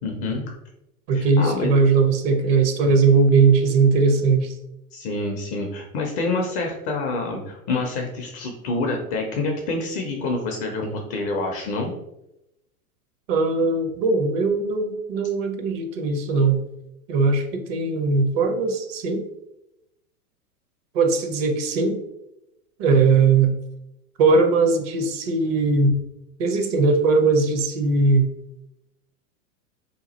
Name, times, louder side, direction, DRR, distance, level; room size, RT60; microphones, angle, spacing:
voice 1, 0.0-0.5 1.1-1.7 4.9-11.9, left 3 dB, 25° left, 2 dB, 0.4 m, -27 dB
voice 2, 1.1-4.6 13.3-16.6 17.1-19.2 20.9-22.0 22.8-23.5 24.2-26.0 26.4-28.3, right 4 dB, 45° right, 6 dB, 0.6 m, -19 dB
2.9 x 2.3 x 4.0 m, 0.86 s
hypercardioid pair, 105°, 45 cm